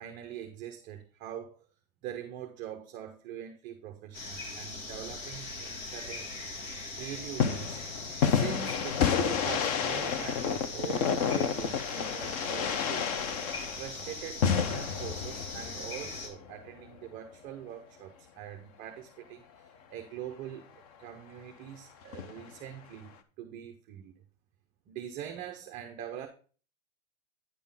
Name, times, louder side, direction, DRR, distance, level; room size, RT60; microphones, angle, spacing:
voice 1, 0.0-1.7 2.0-6.4 6.9-7.8 8.2-13.0 13.7-24.1 24.9-26.3, right 10 dB, 20° right, 0.5 m, -43 dB
sound 1, 4.1-16.3, left 3 dB, 70° left, 2.2 m, -40 dB
sound 2, 7.4-16.6 22.1-22.5, left 7 dB, 30° left, 0.4 m, -30 dB
9.5 x 3.6 x 5.4 m
hypercardioid pair, 140°, 41 cm